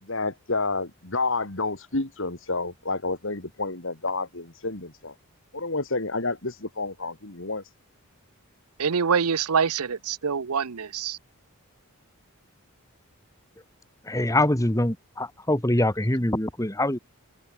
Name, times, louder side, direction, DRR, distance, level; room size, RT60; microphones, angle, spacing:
voice 1, 0.0-5.1 5.5-7.6, left 3 dB, 60° left, 2.5 m, -29 dB
voice 2, 8.8-11.2, right 6 dB, 85° right, 0.8 m, -25 dB
voice 3, 14.1-17.0, left 1 dB, 15° left, 1.6 m, -24 dB
head